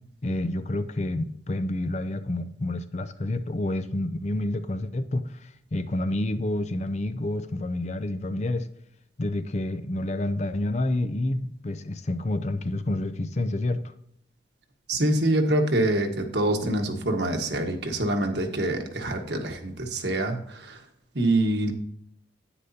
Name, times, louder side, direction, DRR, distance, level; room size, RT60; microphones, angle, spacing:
voice 1, 0.2-8.7 9.2-13.8, left 1 dB, 40° left, 0.5 m, -29 dB
voice 2, 14.9-20.8 21.1-21.7, right 1 dB, 65° right, 1.4 m, -25 dB
9.9 x 9.2 x 2.8 m
head